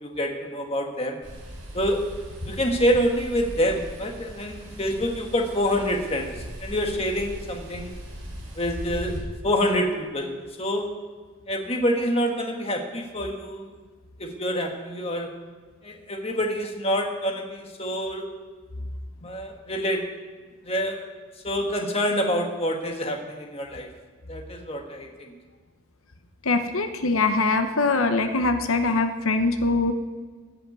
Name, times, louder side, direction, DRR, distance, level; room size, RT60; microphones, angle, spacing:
voice 1, 0.0-1.2 1.7-2.0 2.5-6.3 6.6-7.9 8.6-9.2 9.4-10.9 11.5-13.7 14.2-15.3 15.8-18.3 19.2-20.0 20.6-21.0 21.4-23.9 24.3-25.3, equal, 30° left, 2 dB, 1.4 m, -26 dB
sound 1, 1.2-9.2, equal, 85° right, 5.3 m, -39 dB
voice 2, 26.4-29.9, left 3 dB, 80° left, 6 dB, 1.0 m, -23 dB
16.5 x 5.8 x 9.4 m, 1.4 s
head